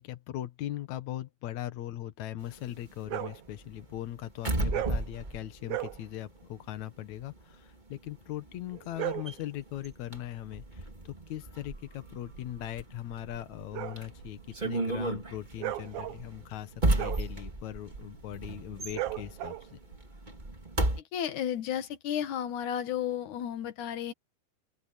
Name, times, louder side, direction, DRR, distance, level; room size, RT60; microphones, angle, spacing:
voice 1, 0.0-19.8, left 13 dB, 85° left, 1.6 m, -40 dB
sound 1, 2.4-6.8 7.1-21.0, right 2 dB, 20° right, 1.4 m, -35 dB
sound 2, 3.0-3.4 4.7-5.1 5.6-6.0 8.7-9.4 11.9-20.0, right 15 dB, 65° right, 2.7 m, -38 dB
voice 2, 21.1-24.1, left 10 dB, 60° left, 2.1 m, -33 dB
open air
omnidirectional pair, 5.2 m